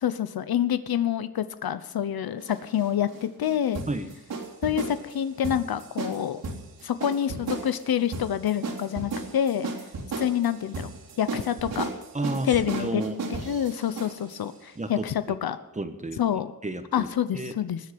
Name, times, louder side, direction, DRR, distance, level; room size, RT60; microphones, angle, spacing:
voice 1, 0.0-3.8 4.6-6.4 6.8-9.7 10.2-10.9 11.2-11.9 12.5-13.0 13.5-15.6 16.2-16.5 16.9-17.8, left 10 dB, 80° left, 12 dB, 1.0 m, -27 dB
sound 1, 2.4-14.4, right 3 dB, 75° right, 3.5 m, -35 dB
voice 2, 12.1-13.1 14.7-15.1 15.7-17.1 17.3-17.6, right 2 dB, 20° right, 8 dB, 1.3 m, -32 dB
20.0 x 7.6 x 8.7 m, 0.97 s
wide cardioid pair, 135°, 36 cm